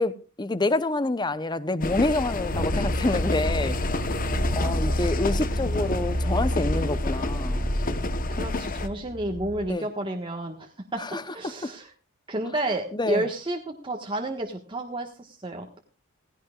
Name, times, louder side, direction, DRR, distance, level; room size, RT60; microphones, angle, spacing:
voice 1, 0.0-3.8 4.5-7.6 9.7-9.9 11.0-11.2 12.9-13.2, left 2 dB, 20° left, 0.7 m, -27 dB
sound 1, 1.8-8.9, left 2 dB, 40° left, 1.0 m, -29 dB
sound 2, 2.5-9.7, equal, 70° right, 1.3 m, -29 dB
voice 2, 4.6-5.0 8.3-11.0 11.3-11.9 12.3-15.8, right 1 dB, 25° right, 1.4 m, -31 dB
17.0 x 16.0 x 2.4 m
head